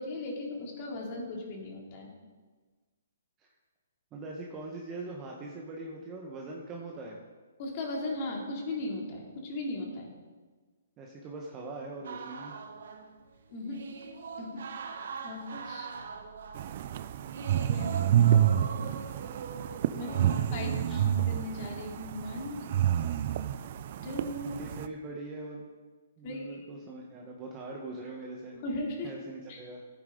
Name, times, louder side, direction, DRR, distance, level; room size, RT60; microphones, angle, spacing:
voice 1, 0.0-2.1 7.6-10.1 13.5-13.8 14.4-14.6 15.2-15.9 17.6-18.4 19.9-20.1 20.5-22.7 24.0-24.6 26.2-26.7 28.6-29.1 29.5-29.6, left 2 dB, 35° left, -1 dB, 2.8 m, -37 dB
voice 2, 4.1-7.2 11.0-12.6 20.0-21.0 24.6-25.7 26.2-28.6 29.0-29.8, right 2 dB, 20° right, -1 dB, 1.2 m, -42 dB
sound 1, 12.0-20.4, right 5 dB, 65° right, 1.2 m, -42 dB
sound 2, 16.5-24.9, right 10 dB, 45° right, 0.5 m, -28 dB
15.0 x 8.9 x 3.9 m, 1.4 s
hypercardioid pair, 150°, 0 cm